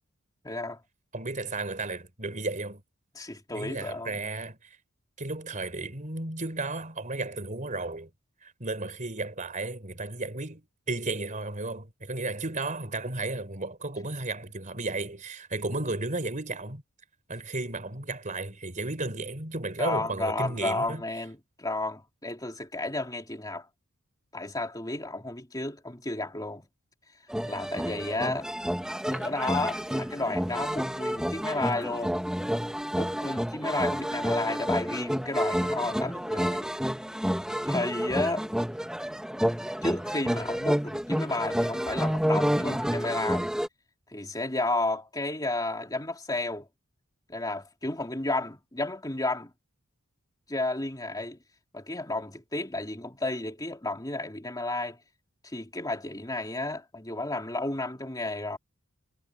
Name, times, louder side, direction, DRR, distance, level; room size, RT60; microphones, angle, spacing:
voice 1, 0.4-0.8 3.1-4.2 19.8-23.7 24.3-26.7 27.4-28.5 29.1-32.2 32.9-36.7 37.6-38.5 39.8-43.5 44.1-46.7 47.3-49.5 50.5-51.4 51.7-55.0 55.4-58.6, left 2 dB, 15° left, 3.0 m, -32 dB
voice 2, 1.1-2.8 3.5-4.8 5.2-8.1 8.4-16.8 17.3-21.0, right 2 dB, 35° right, 4.2 m, -34 dB
sound 1, 27.3-43.7, equal, 5° right, 1.7 m, -29 dB
head